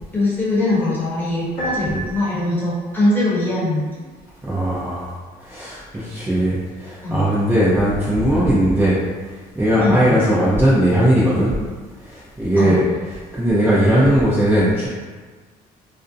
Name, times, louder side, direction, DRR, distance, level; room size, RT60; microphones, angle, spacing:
voice 1, 0.1-3.8 7.0-7.2 9.8-10.2 12.6-12.8, left 2 dB, 10° left, -8 dB, 0.9 m, -21 dB
Piano, 1.6-2.8, right 2 dB, 60° left, 0.9 m, -31 dB
voice 2, 4.4-5.0 5.5-9.0 9.6-11.5 12.4-12.8 13.3-14.9, right 1 dB, 15° right, -10 dB, 0.5 m, -18 dB
2.5 x 2.1 x 2.5 m, 1.4 s
cardioid pair, 110°, 17 cm